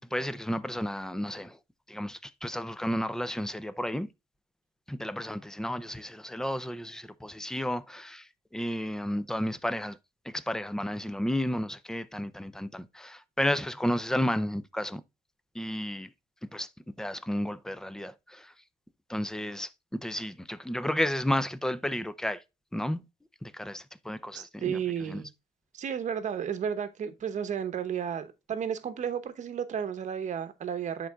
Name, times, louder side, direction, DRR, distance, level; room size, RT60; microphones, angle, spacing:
voice 1, 0.1-1.6 1.9-4.1 4.9-8.3 8.5-10.0 10.3-15.0 15.5-16.1 16.5-16.7 17.0-18.5 19.1-22.4 22.7-23.0 23.4-24.8 25.1-25.2, left 1 dB, 5° left, 0.5 m, -32 dB
voice 2, 24.3-25.3 25.7-31.1, right 8 dB, 45° right, 0.9 m, -33 dB
11.5 x 3.9 x 2.3 m
cardioid pair, 110°, 17 cm